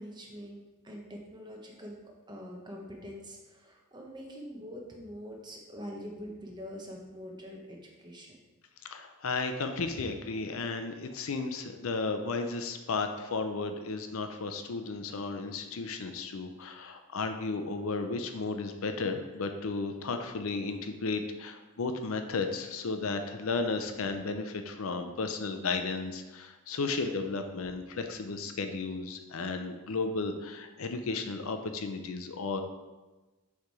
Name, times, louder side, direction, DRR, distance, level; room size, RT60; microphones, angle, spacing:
voice 1, 0.0-8.4, equal, 20° right, -1 dB, 1.0 m, -44 dB
voice 2, 8.9-32.6, left 3 dB, 70° left, 7 dB, 0.5 m, -34 dB
6.6 x 3.4 x 4.7 m, 1.2 s
head